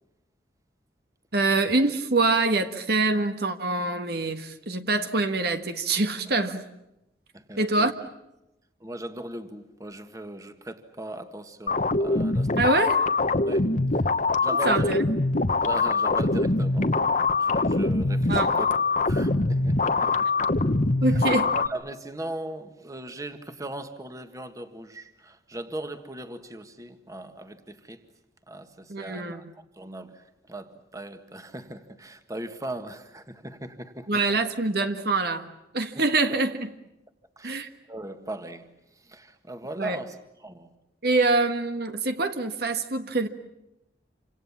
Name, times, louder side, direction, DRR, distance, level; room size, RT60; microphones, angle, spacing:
voice 1, 1.3-6.6 7.6-7.9 12.6-13.0 14.5-15.0 18.3-18.5 21.0-21.5 28.9-29.4 34.1-35.5 35.7-36.5 37.4-37.7 39.8-40.0 41.0-43.3, right 3 dB, 60° right, 8 dB, 1.6 m, -25 dB
voice 2, 7.3-7.9 8.8-12.8 13.4-14.1 14.4-14.9 15.6-17.1 17.4-18.7 19.0-20.5 21.0-28.0 28.5-34.2 35.9-36.0 37.4-40.7, right 1 dB, 20° right, 8 dB, 1.7 m, -39 dB
sound 1, 11.7-21.7, left 3 dB, 45° left, 1.1 m, -23 dB
28.5 x 26.5 x 7.4 m, 0.88 s
head